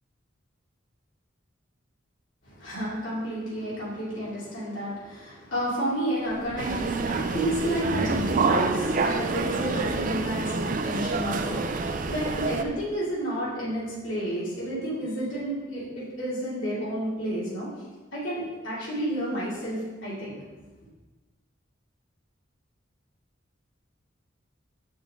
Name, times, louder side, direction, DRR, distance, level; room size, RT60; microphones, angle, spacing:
voice 1, 2.4-17.7 18.1-20.3, right 1 dB, 80° left, -8 dB, 2.5 m, -31 dB
sound 1, 6.2-12.6, left 1 dB, 40° left, 1.0 m, -46 dB
sound 2, 6.6-12.6, right 3 dB, 45° right, 0.4 m, -27 dB
7.2 x 6.2 x 3.6 m, 1.3 s
head